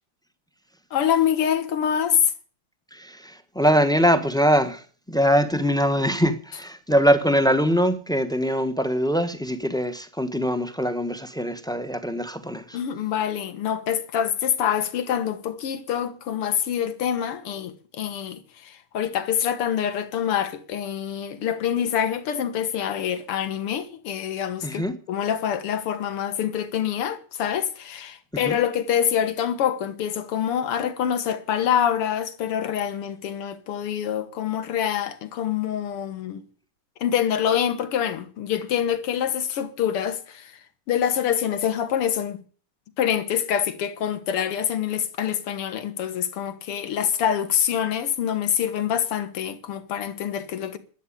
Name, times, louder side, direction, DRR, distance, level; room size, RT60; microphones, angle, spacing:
voice 1, 0.9-2.3 12.7-36.4 37.0-40.6 40.9-42.4 43.0-50.8, left 9 dB, 85° left, 2.4 m, -25 dB
voice 2, 2.9-4.8 5.1-12.8 24.6-24.9 28.4-28.6, equal, 5° left, 0.4 m, -22 dB
12.5 x 8.6 x 10.0 m
omnidirectional pair, 2.4 m